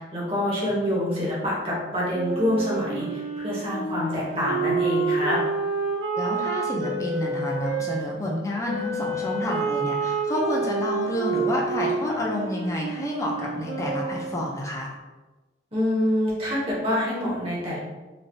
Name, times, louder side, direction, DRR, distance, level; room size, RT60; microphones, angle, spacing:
voice 1, 0.0-5.4 15.7-17.8, left 1 dB, 30° right, -6 dB, 0.9 m, -26 dB
Wind instrument woodwind instrument, 2.1-8.0 8.7-14.5, right 4 dB, 80° right, 1.3 m, -28 dB
voice 2, 6.1-14.9, left 1 dB, 15° left, -2 dB, 0.4 m, -29 dB
3.1 x 2.6 x 2.6 m, 1.2 s
head